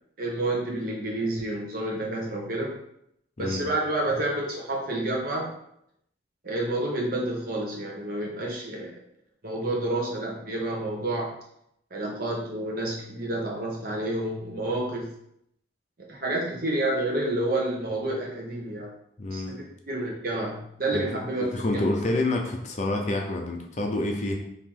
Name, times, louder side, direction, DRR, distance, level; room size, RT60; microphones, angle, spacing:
voice 1, 0.2-2.8 3.4-5.6 6.4-8.9 9.4-11.3 11.9-15.1 16.1-18.9 19.3-21.8, right 1 dB, 50° right, -2 dB, 1.0 m, -29 dB
voice 2, 3.4-3.7 19.2-19.6 20.9-21.0 21.3-24.4, left 2 dB, 40° left, 2 dB, 0.6 m, -28 dB
4.6 x 2.9 x 3.7 m, 0.75 s
head